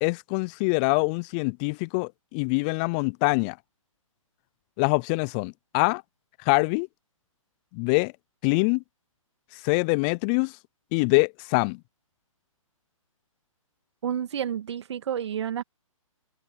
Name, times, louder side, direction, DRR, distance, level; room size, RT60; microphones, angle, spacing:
voice 1, 0.0-3.6 4.8-6.0 6.5-6.9 7.7-8.1 8.4-8.8 9.6-10.5 10.9-11.8, left 31 dB, 15° left, 0.3 m, -24 dB
voice 2, 14.0-15.6, right 9 dB, 55° right, 1.8 m, -30 dB
figure-of-eight pair, 135°, 18 cm